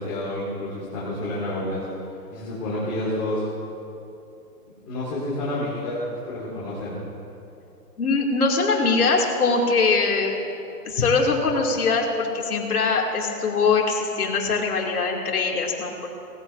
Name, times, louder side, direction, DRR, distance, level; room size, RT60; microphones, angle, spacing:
voice 1, 0.0-3.4 4.9-6.0 6.3-7.0, left 1 dB, 15° left, -10 dB, 1.8 m, -29 dB
voice 2, 8.0-10.3 10.8-16.1, left 4 dB, 65° left, -1 dB, 2.5 m, -22 dB
19.5 x 14.5 x 2.6 m, 2.8 s
hypercardioid pair, 175°, 48 cm